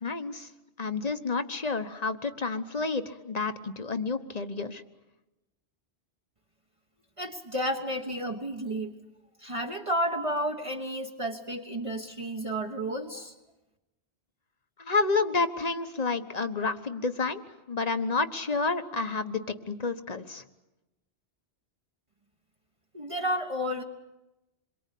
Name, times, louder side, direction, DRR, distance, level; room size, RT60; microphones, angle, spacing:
voice 1, 0.0-0.5 0.8-4.8 14.8-17.4 17.7-20.4, left 4 dB, 40° left, 9 dB, 1.3 m, -30 dB
voice 2, 7.2-9.0 9.4-13.3 22.9-23.8, equal, 30° right, 0 dB, 1.4 m, -31 dB
27.0 x 23.0 x 8.5 m, 1.0 s
omnidirectional pair, 1.1 m